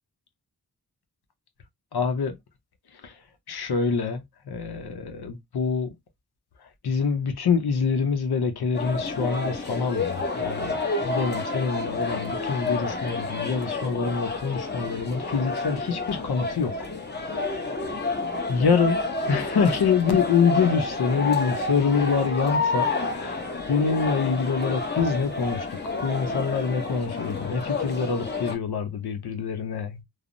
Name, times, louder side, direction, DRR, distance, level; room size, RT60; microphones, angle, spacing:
voice 1, 1.9-2.4 3.0-3.1 3.5-5.9 6.8-10.7 11.0-16.7 18.5-23.4 23.7-25.7 26.0-30.0, left 5 dB, 80° left, 0.7 m, -25 dB
sound 1, 8.7-28.5, left 3 dB, 30° left, 0.7 m, -29 dB
3.2 x 2.0 x 2.5 m
wide cardioid pair, 100°, 38 cm